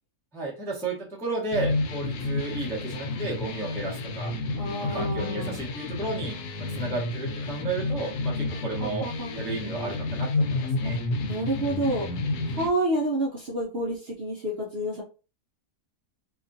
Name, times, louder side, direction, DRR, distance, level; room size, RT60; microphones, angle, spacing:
voice 1, 0.3-4.3 4.8-6.3 6.7-9.1 9.3-11.0, right 3 dB, 5° left, -4 dB, 0.5 m, -33 dB
sound 1, 1.5-12.7, left 2 dB, 85° left, 1.2 m, -30 dB
voice 2, 4.5-5.6 8.8-9.3 11.2-12.1 12.5-15.0, right 1 dB, 55° right, -4 dB, 0.7 m, -29 dB
2.8 x 2.4 x 2.6 m, 0.33 s
omnidirectional pair, 1.6 m